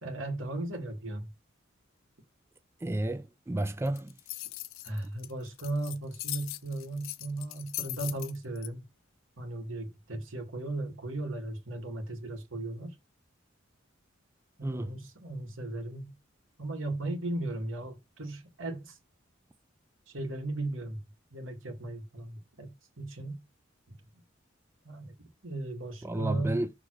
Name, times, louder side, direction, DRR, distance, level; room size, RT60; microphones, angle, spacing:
voice 1, 0.0-1.3 4.8-8.8 9.4-13.0 14.6-16.1 16.6-19.0 20.1-21.0 21.3-23.4 24.8-26.6, right 2 dB, 75° right, 2.0 m, -36 dB
voice 2, 2.8-4.2 14.6-15.0 26.0-26.7, right 1 dB, 15° right, 0.3 m, -32 dB
sound 1, 3.9-8.7, left 17 dB, 90° left, 0.5 m, -39 dB
6.2 x 3.8 x 4.7 m
head